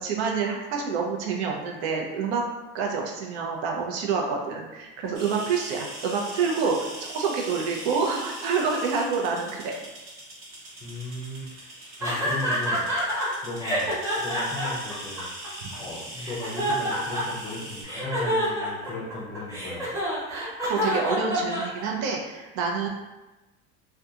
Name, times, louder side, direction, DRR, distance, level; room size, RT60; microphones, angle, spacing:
voice 1, 0.0-2.4 2.7-9.7 20.3-22.9, right 5 dB, 85° right, 0 dB, 0.6 m, -27 dB
sound 1, 5.1-17.8, right 1 dB, 40° right, 0.8 m, -41 dB
voice 2, 10.8-15.3 15.8-19.9, left 2 dB, 15° left, -3 dB, 0.4 m, -37 dB
sound 2, 12.0-13.3 13.6-15.7 16.2-17.5 17.8-22.1, equal, 10° right, 0.9 m, -28 dB
2.7 x 2.3 x 2.3 m, 1.1 s
cardioid pair, 150°, 33 cm